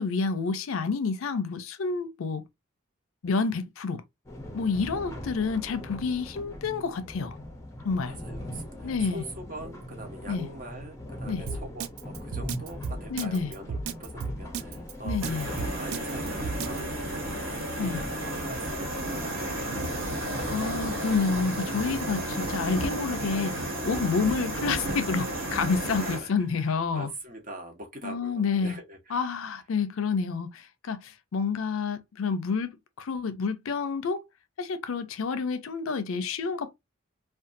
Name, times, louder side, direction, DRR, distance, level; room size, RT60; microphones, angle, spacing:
voice 1, 0.0-2.4 3.2-4.0 4.5-7.4 7.8-8.1 8.8-9.2 10.3-10.5 11.3-11.4 13.1-13.5 15.0-15.5 17.8-18.0 20.5-27.1 28.0-28.8 29.1-34.2 34.6-36.7, left 5 dB, 75° left, 0.4 m, -29 dB
sound 1, 4.3-22.2, left 1 dB, 15° left, 0.5 m, -40 dB
voice 2, 8.0-20.5 26.0-29.4, right 1 dB, 40° right, 0.7 m, -44 dB
Drum kit, 11.5-16.8, right 5 dB, 90° right, 0.3 m, -33 dB
sound 2, 15.2-26.2, right 1 dB, 70° right, 1.4 m, -32 dB
2.6 x 2.3 x 2.5 m
head